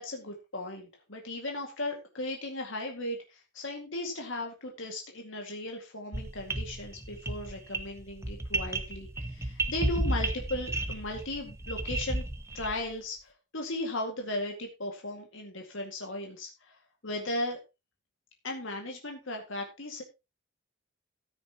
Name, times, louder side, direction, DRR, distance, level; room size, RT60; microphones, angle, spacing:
voice 1, 0.0-12.2 12.5-16.8 17.0-17.6 18.4-20.0, left 1 dB, 70° left, 2 dB, 2.1 m, -36 dB
sound 1, 6.1-12.9, right 2 dB, 15° right, 0.9 m, -33 dB
14.0 x 9.8 x 3.0 m, 0.26 s
head